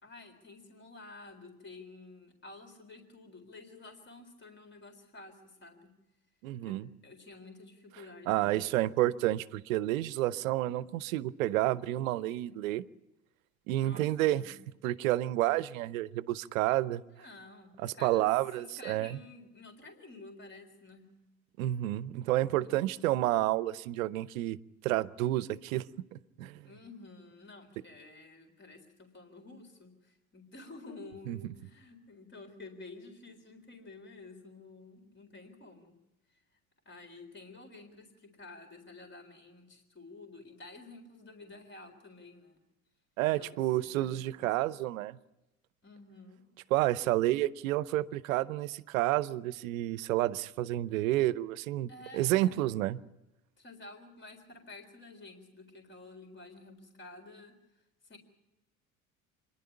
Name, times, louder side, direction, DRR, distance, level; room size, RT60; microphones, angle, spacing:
voice 1, 0.0-5.9 6.7-6.8 7.0-8.7 13.8-14.5 17.1-18.3 18.6-21.1 22.6-22.8 26.6-35.9 36.3-36.4 36.9-42.6 43.2-44.8 45.8-46.4 51.9-52.7 53.6-58.2, left 3 dB, 25° left, 4 dB, 3.9 m, -51 dB
voice 2, 6.4-6.9 8.3-12.8 13.7-14.5 14.8-17.0 17.8-19.2 21.6-24.6 24.8-25.9 26.4-26.6 31.3-31.4 43.2-45.2 46.7-53.0, right 15 dB, 75° right, 18 dB, 0.8 m, -30 dB
26.5 x 11.0 x 9.9 m, 0.99 s
hypercardioid pair, 70°, 42 cm